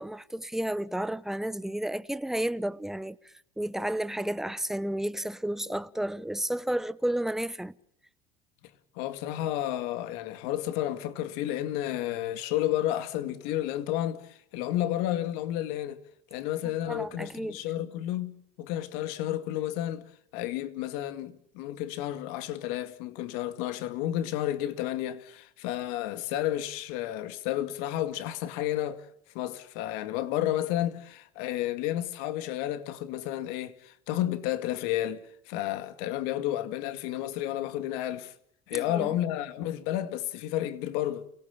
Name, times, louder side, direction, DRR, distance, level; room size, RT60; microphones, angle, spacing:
voice 1, 0.0-7.7 16.9-17.6 38.7-39.1, right 1 dB, ahead, 0.9 m, -32 dB
voice 2, 9.0-16.0 16.3-20.1 20.3-29.1 29.3-38.3 38.7-41.3, left 13 dB, 75° left, 2.2 m, -31 dB
30.0 x 18.0 x 7.2 m
supercardioid pair, 120°, 16 cm